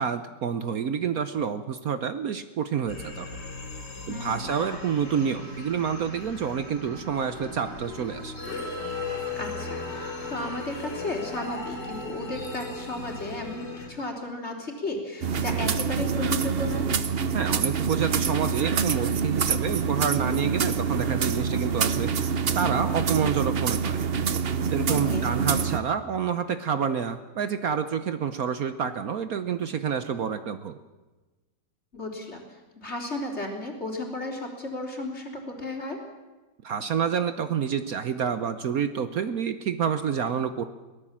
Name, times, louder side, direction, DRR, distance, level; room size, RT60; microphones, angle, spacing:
voice 1, 0.0-3.3 4.1-8.3 17.3-22.1 22.5-24.0 24.7-30.8 36.6-40.6, right 7 dB, 60° right, 10 dB, 1.2 m, -28 dB
sound 1, 2.9-13.9, left 2 dB, 80° left, 4.3 m, -37 dB
voice 2, 4.1-4.6 9.4-16.9 24.9-25.3 31.9-32.4 32.8-36.0, left 2 dB, 40° left, 1 dB, 3.9 m, -34 dB
sound 2, 15.2-25.8, right 6 dB, 45° right, 0.9 m, -26 dB
23.0 x 17.5 x 7.4 m, 1.2 s
omnidirectional pair, 1.9 m